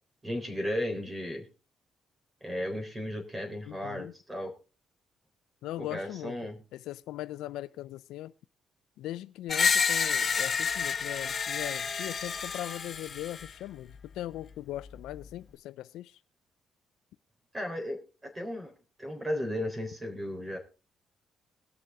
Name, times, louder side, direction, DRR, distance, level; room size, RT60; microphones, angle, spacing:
voice 1, 0.2-1.5 2.4-4.5 5.8-6.6 17.5-18.7 19.0-20.6, left 1 dB, 20° right, 3.7 m, -35 dB
voice 2, 3.7-4.1 5.6-6.4 6.7-8.3 9.0-16.2, left 14 dB, 90° left, 0.4 m, -39 dB
Screech, 9.5-13.5, left 6 dB, 45° left, 1.1 m, -29 dB
20.0 x 6.7 x 3.6 m
cardioid pair, 90°, 0 cm